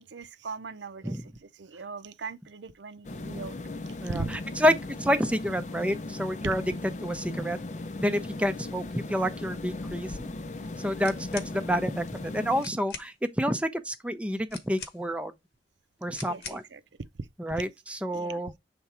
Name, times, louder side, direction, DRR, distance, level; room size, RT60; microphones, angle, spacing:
voice 1, 0.0-3.6 4.0-4.4 6.4-6.6 16.2-16.8 18.1-18.4, right 4 dB, 85° right, 0.7 m, -39 dB
sound 1, 3.0-12.6, left 2 dB, 40° left, 0.5 m, -38 dB
voice 2, 4.0-6.6 7.0-7.6 8.0-10.3 10.8-15.3 16.0-16.6 17.4-18.5, equal, 5° right, 0.5 m, -29 dB
sound 2, 11.0-11.6 12.3-12.4 12.6-13.1 14.5-15.2 16.1-16.7, left 5 dB, 65° left, 1.2 m, -42 dB
6.7 x 3.5 x 4.2 m
head